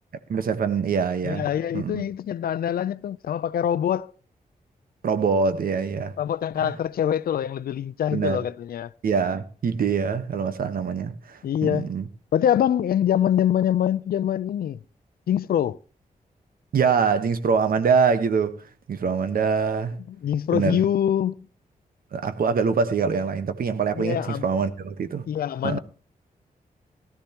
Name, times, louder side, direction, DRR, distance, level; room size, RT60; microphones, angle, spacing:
voice 1, 0.3-1.5 1.7-2.0 5.0-6.1 6.6-6.7 8.1-8.4 9.0-12.0 16.7-20.0 20.5-20.8 22.1-25.3 25.6-25.8, right 5 dB, 75° right, 1.2 m, -24 dB
voice 2, 1.2-4.1 6.2-8.9 11.4-11.9 12.3-14.8 15.3-15.8 20.1-21.5 24.0-24.4 25.3-25.8, left 10 dB, 90° left, 0.5 m, -24 dB
17.5 x 12.5 x 2.9 m
wide cardioid pair, 100°, 15 cm